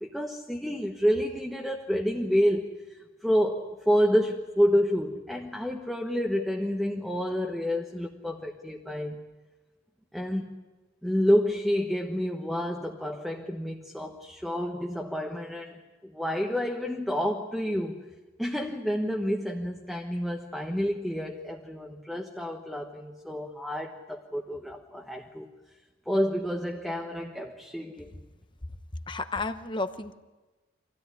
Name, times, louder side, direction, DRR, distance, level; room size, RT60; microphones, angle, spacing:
voice 1, 0.0-2.8 3.2-9.3 10.1-10.6 11.0-18.0 18.4-25.5 26.1-28.1, equal, ahead, 0 dB, 1.2 m, -29 dB
voice 2, 29.1-30.1, left 3 dB, 25° left, 9 dB, 1.0 m, -32 dB
26.0 x 16.5 x 9.9 m, 1.2 s
head